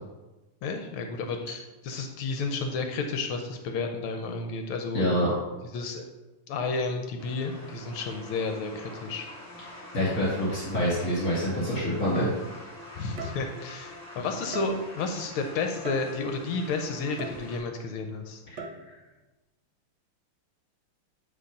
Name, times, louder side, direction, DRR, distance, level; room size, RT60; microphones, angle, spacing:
voice 1, 0.6-1.6 1.8-5.1 5.7-6.0 6.5-9.3 13.0-18.4, left 4 dB, 75° left, 5 dB, 1.5 m, -31 dB
voice 2, 4.9-5.3 9.9-12.3 18.5-18.6, equal, 40° left, -7 dB, 2.5 m, -26 dB
sound 1, 7.2-17.6, left 1 dB, 10° left, 1.8 m, -45 dB
sound 2, 13.2-13.8 14.5-15.1 15.8-16.5 17.2-17.9 18.6-19.1, right 3 dB, 60° right, 1.3 m, -40 dB
9.2 x 3.5 x 5.2 m, 1.1 s
omnidirectional pair, 2.4 m